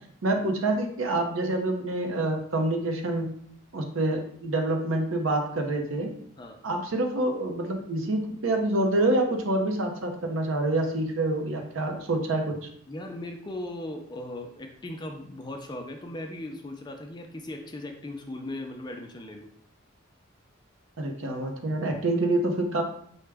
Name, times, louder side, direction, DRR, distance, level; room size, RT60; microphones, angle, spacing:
voice 1, 0.2-3.3 3.7-6.1 6.6-12.5 21.0-22.8, right 2 dB, 80° right, 3 dB, 0.6 m, -27 dB
voice 2, 12.9-19.5, left 1 dB, 20° left, 3 dB, 0.4 m, -38 dB
4.7 x 2.1 x 3.3 m, 0.65 s
head